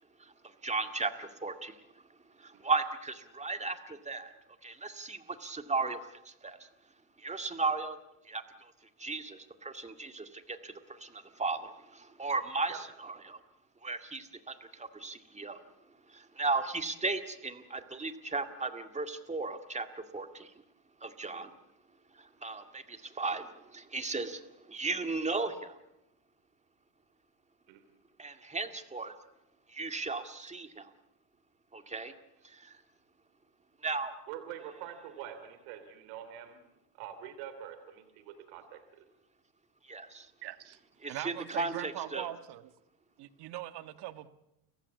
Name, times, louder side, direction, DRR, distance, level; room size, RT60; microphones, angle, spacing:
voice 1, 0.6-1.7 2.4-4.3 4.6-6.0 6.4-6.6 7.2-8.0 8.3-8.4 9.0-13.4 13.8-14.5 14.8-15.6 16.1-19.9 20.1-20.5 21.0-21.5 22.4-23.5 23.7-24.4 24.7-25.7 28.2-29.1 29.7-30.9 31.7-32.1 33.8-34.1 39.9-40.3 41.0-42.3, right 3 dB, 15° right, 8 dB, 2.0 m, -35 dB
voice 2, 34.3-36.6 36.9-38.8, right 10 dB, 85° right, 9 dB, 3.3 m, -45 dB
voice 3, 40.4-40.8 41.1-42.7 43.2-44.3, right 14 dB, 60° right, 12 dB, 1.6 m, -41 dB
30.0 x 15.0 x 8.3 m, 0.89 s
cardioid pair, 115°, 45 cm